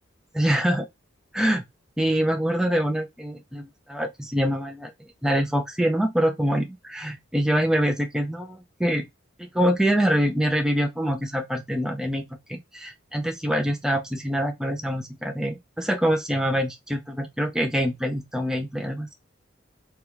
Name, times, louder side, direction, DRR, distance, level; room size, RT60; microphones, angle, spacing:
voice 1, 0.3-0.9 1.3-1.6 2.0-9.1 9.4-19.1, equal, 5° right, 0.4 m, -25 dB
2.9 x 2.3 x 3.2 m
head